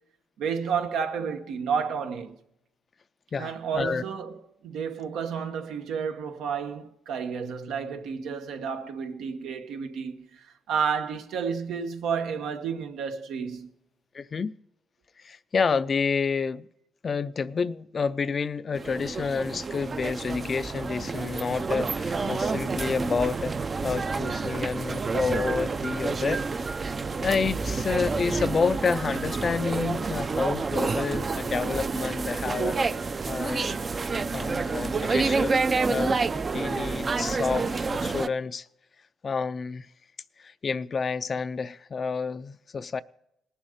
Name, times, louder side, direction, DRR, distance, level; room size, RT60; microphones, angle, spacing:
voice 1, 0.4-2.4 3.4-13.7, right 6 dB, 85° right, 1.0 m, -31 dB
voice 2, 3.3-4.0 14.1-14.5 15.2-16.7 17.0-23.5 23.8-26.8 27.2-33.7 34.3-35.6 35.9-36.3 36.5-38.7 39.2-39.9 40.4-43.0, left 5 dB, 40° left, 0.4 m, -29 dB
sound 1, 18.7-38.3, right 4 dB, 35° right, 0.4 m, -29 dB
19.0 x 7.2 x 5.1 m
cardioid pair, 105°, 0 cm